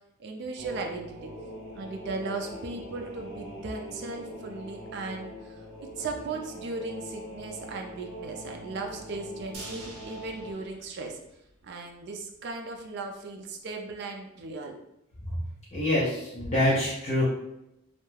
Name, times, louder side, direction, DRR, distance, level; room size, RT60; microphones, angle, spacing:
voice 1, 0.2-1.3 1.7-11.2 11.6-14.8, right 3 dB, 50° right, 3 dB, 0.3 m, -37 dB
sound 1, 0.6-10.5, equal, 20° right, 0.7 m, -43 dB
sound 2, 9.5-11.7 12.0-12.1 12.5-12.6, right 2 dB, 80° right, 0.6 m, -46 dB
voice 2, 15.7-17.2, left 1 dB, 30° left, -6 dB, 0.5 m, -26 dB
2.2 x 2.1 x 3.1 m, 0.85 s
head